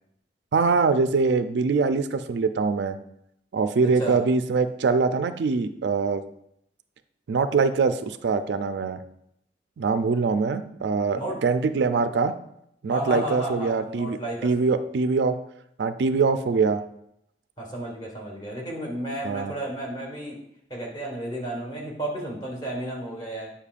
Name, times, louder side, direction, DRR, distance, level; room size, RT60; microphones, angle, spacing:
voice 1, 0.5-3.0 3.5-6.2 7.3-9.0 9.8-12.3 12.8-14.2 14.4-15.3 15.8-16.8 19.2-19.5, right 4 dB, 70° right, 11 dB, 0.4 m, -23 dB
voice 2, 3.8-4.2 11.1-11.4 12.9-14.5 17.6-20.4 20.7-23.5, right 1 dB, 25° left, -1 dB, 1.4 m, -32 dB
8.4 x 5.5 x 2.4 m, 0.75 s
head